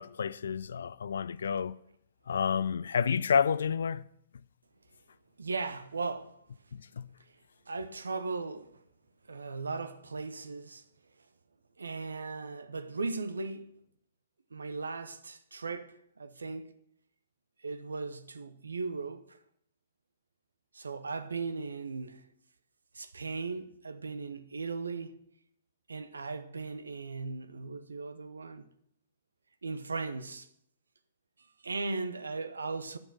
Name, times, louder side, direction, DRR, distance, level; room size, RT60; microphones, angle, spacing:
voice 1, 0.0-1.8 2.3-4.1 6.7-7.1, left 6 dB, 65° left, 0.3 m, -30 dB
voice 2, 5.4-6.4 7.7-8.8 9.3-10.8 11.8-13.7 14.5-16.7 17.6-19.4 20.7-22.3 22.9-25.2 25.9-28.7 29.6-30.5 31.6-33.0, right 4 dB, 75° right, 0.8 m, -37 dB
9.5 x 6.9 x 5.5 m
figure-of-eight pair, 115°, 0 cm